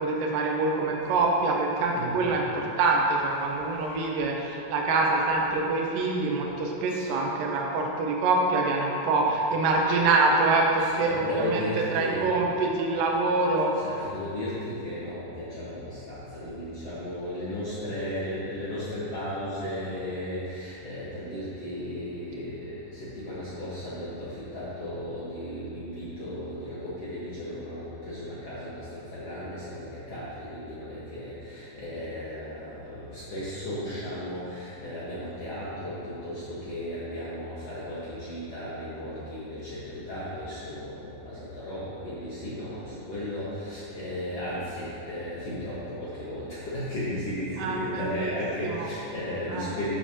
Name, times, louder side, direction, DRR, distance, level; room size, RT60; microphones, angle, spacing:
voice 1, 0.0-11.6 11.9-13.7 47.6-48.3 48.8-48.9 49.5-49.7, right 3 dB, 80° right, -1 dB, 2.0 m, -25 dB
voice 2, 0.7-2.4 3.5-4.0 6.3-6.4 6.8-7.1 9.2-9.3 10.8-12.4 13.8-50.0, left 1 dB, 80° left, -10 dB, 1.3 m, -35 dB
13.0 x 7.4 x 2.9 m, 2.8 s
omnidirectional pair, 5.1 m